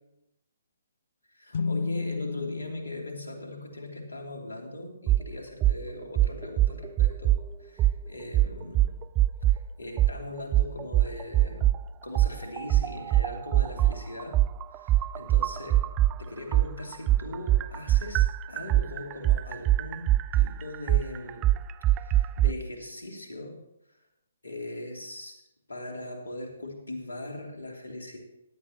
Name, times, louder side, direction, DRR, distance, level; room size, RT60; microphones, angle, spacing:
voice 1, 1.5-7.3 7.6-8.9 9.5-11.7 12.0-14.4 14.7-15.8 16.2-20.1 20.3-21.5 21.9-23.6 23.9-24.0 24.4-25.4 25.7-28.2, left 1 dB, 80° left, 1 dB, 2.9 m, -40 dB
sound 1, 1.5-5.1, left 4 dB, 55° left, 0.7 m, -35 dB
sound 2, 5.1-5.2 5.6-5.8 6.2-7.4 7.8-8.0 8.3-9.6 10.0-10.2 10.5-11.8 12.2-16.2 16.5-22.5, right 14 dB, 25° right, 0.3 m, -22 dB
17.0 x 10.5 x 3.0 m, 0.86 s
figure-of-eight pair, 135°, 0 cm